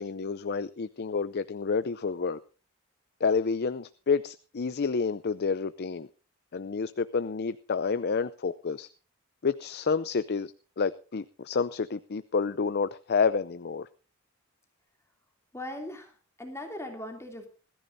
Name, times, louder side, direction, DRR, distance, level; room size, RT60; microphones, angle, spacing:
voice 1, 0.0-2.4 3.2-6.1 6.5-8.9 9.4-10.5 10.8-13.9, left 5 dB, 50° left, 14 dB, 0.5 m, -29 dB
voice 2, 15.5-17.5, left 1 dB, 15° left, 3 dB, 2.8 m, -39 dB
21.0 x 14.0 x 2.7 m, 0.36 s
head